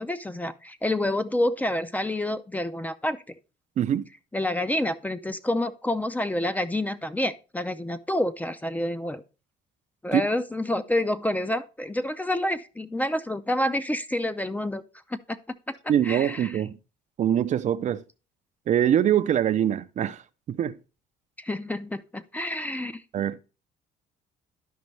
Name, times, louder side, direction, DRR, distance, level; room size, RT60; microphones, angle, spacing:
voice 1, 0.0-3.2 4.3-9.2 10.0-14.8 15.1-15.4 15.7-15.8 16.0-16.5 21.4-23.0, left 1 dB, 10° left, 0.5 m, -28 dB
voice 2, 3.8-4.1 10.1-10.2 15.9-16.8 17.2-18.0 18.7-20.2 20.5-20.8 23.1-23.4, right 10 dB, 45° right, 0.4 m, -23 dB
11.5 x 5.1 x 3.2 m
cardioid pair, 110°, 17 cm